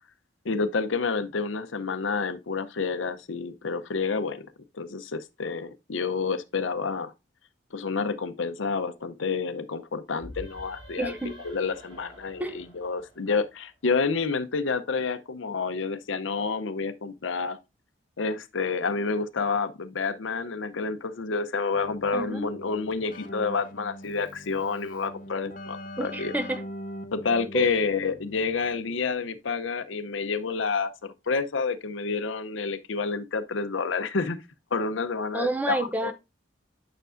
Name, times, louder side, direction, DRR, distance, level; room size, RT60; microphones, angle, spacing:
voice 1, 0.4-4.5 4.7-7.1 7.7-17.6 18.2-26.3 27.1-34.4 34.7-36.1, left 4 dB, 80° left, 0.7 m, -29 dB
sound 1, 10.2-13.8, equal, 25° right, 3.9 m, -47 dB
voice 2, 11.0-11.4 12.4-12.6 22.1-22.5 26.0-26.6 27.5-27.8 35.3-36.1, right 1 dB, 10° right, 0.5 m, -29 dB
Keyboard (musical), 21.7-29.0, equal, 45° left, 0.7 m, -42 dB
9.2 x 6.0 x 2.5 m
head